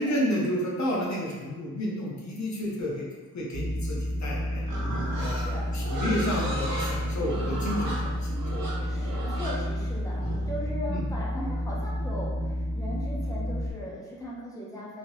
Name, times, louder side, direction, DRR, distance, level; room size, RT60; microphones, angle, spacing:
voice 1, 0.0-3.1 3.3-4.6 5.2-9.0 10.9-11.0, equal, 55° left, -3 dB, 0.7 m, -31 dB
sound 1, 3.5-13.7, equal, 45° right, 1.2 m, -30 dB
Livestock farm animals working animals, 4.6-10.7, right 1 dB, 85° right, 0.9 m, -35 dB
voice 2, 5.4-5.7 8.8-15.0, left 1 dB, 10° left, -5 dB, 0.6 m, -38 dB
3.1 x 2.7 x 2.9 m, 1.3 s
wide cardioid pair, 175°, 35 cm